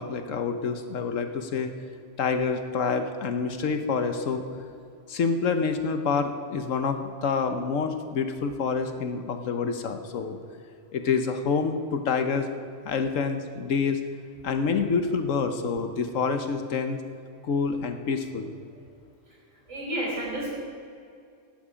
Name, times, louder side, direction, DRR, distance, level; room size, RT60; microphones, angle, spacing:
voice 1, 0.0-1.7 2.2-4.4 5.1-10.4 10.9-12.5 12.8-14.0 14.4-17.0 17.4-18.5, left 5 dB, 80° left, 7 dB, 1.4 m, -27 dB
voice 2, 19.7-20.5, right 1 dB, 85° right, -4 dB, 4.9 m, -31 dB
16.0 x 11.5 x 5.1 m, 2.4 s
omnidirectional pair, 1.3 m